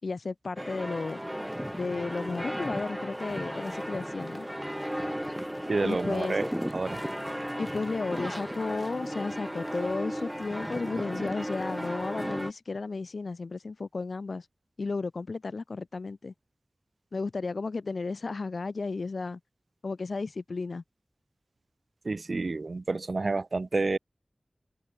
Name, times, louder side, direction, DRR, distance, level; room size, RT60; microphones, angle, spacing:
voice 1, 0.0-1.2 1.7-4.5 5.8-6.4 7.6-14.5 14.8-16.3 17.1-19.4 19.8-20.8, left 3 dB, 85° left, 5.3 m, -33 dB
sound 1, 0.6-12.5, equal, 5° right, 5.1 m, -35 dB
voice 2, 5.7-6.4 6.7-7.0 22.0-24.0, right 3 dB, 70° right, 1.1 m, -29 dB
wide cardioid pair, 50°, 0 cm